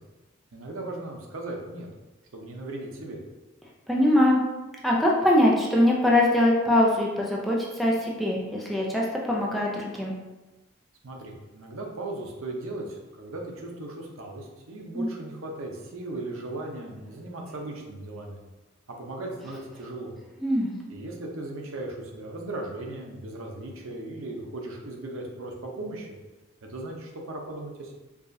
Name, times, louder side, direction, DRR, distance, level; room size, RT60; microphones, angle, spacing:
voice 1, 0.5-1.9 2.3-3.2 11.0-18.4 19.0-20.1 20.9-26.1 26.6-27.9, right 2 dB, 85° right, 1 dB, 0.7 m, -37 dB
voice 2, 3.9-4.4 4.8-10.1 14.9-15.1 20.4-20.7, left 1 dB, ahead, -4 dB, 0.5 m, -22 dB
4.7 x 2.4 x 2.6 m, 1.1 s
head